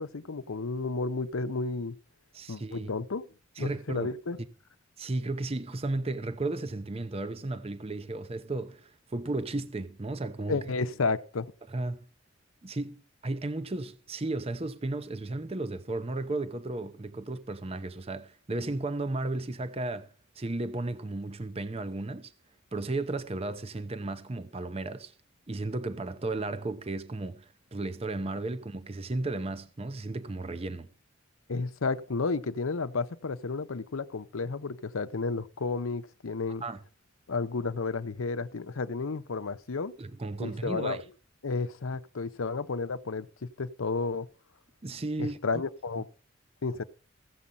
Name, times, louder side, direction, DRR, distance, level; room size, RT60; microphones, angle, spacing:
voice 1, 0.0-2.0 2.5-3.2 3.6-4.4 10.5-11.5 31.5-36.6 37.3-39.9 40.4-41.0 41.4-44.3 45.2-46.1 46.6-46.8, left 4 dB, 85° left, 0.7 m, -32 dB
voice 2, 2.3-2.9 3.6-4.1 5.0-10.6 11.7-12.1 12.6-22.3 22.7-25.1 25.5-30.9 36.6-36.8 40.0-41.0 44.8-45.6, right 2 dB, 30° right, 0.6 m, -34 dB
15.0 x 7.4 x 5.4 m
head